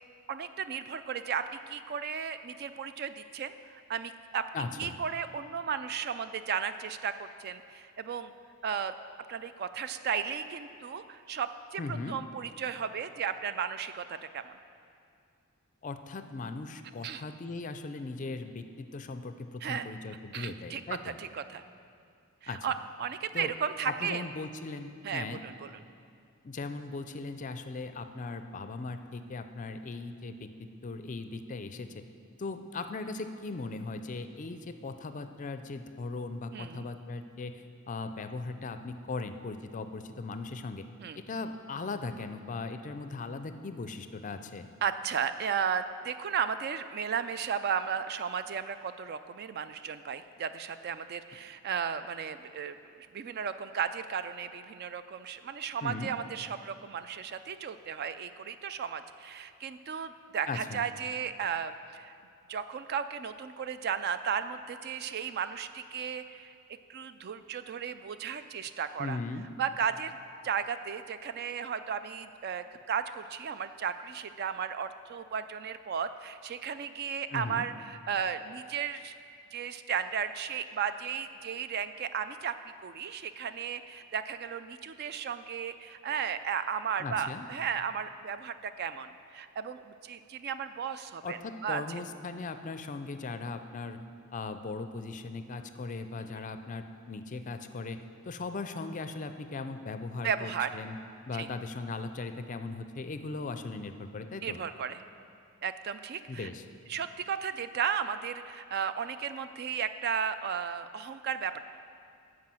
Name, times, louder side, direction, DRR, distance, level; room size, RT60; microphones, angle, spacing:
voice 1, 0.3-4.4 4.8-8.3 8.6-8.9 9.3-14.5 17.0-17.2 19.6-19.9 20.3-21.6 22.4-22.7 23.0-24.3 25.0-25.7 36.5-36.9 41.0-41.2 44.8-62.1 62.5-66.5 66.9-69.2 69.6-70.1 70.4-79.1 79.5-91.8 96.3-96.4 100.2-100.7 101.3-101.5 104.4-105.0 105.6-106.5 106.9-111.6, right 7 dB, 50° right, 12 dB, 0.3 m, -34 dB
voice 2, 4.5-5.0 11.8-12.2 15.8-21.2 22.5-22.7 23.3-23.5 23.9-25.4 26.4-32.0 32.4-40.9 41.2-44.7 55.8-56.1 60.5-60.8 69.0-69.5 77.3-77.7 87.0-87.5 91.2-94.0 94.3-98.0 98.3-101.0 101.3-104.6 106.3-106.6, left 3 dB, 35° left, 9 dB, 0.4 m, -38 dB
11.5 x 4.8 x 7.6 m, 2.4 s
head